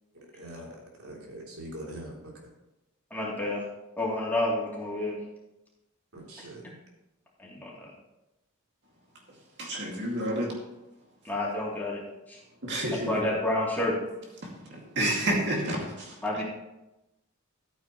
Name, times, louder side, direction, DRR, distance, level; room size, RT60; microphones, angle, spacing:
voice 1, 0.4-2.1 6.1-6.6, right 1 dB, 85° right, -3 dB, 3.2 m, -42 dB
voice 2, 3.1-3.6 4.0-5.2 7.4-7.9 11.2-12.0 12.3-12.4 13.1-13.9 16.2-16.4, left 1 dB, 10° left, -6 dB, 3.0 m, -29 dB
voice 3, 9.6-10.5 12.6-13.3 14.4-16.2, right 1 dB, 55° right, -1 dB, 2.3 m, -30 dB
13.5 x 8.9 x 3.1 m, 0.95 s
head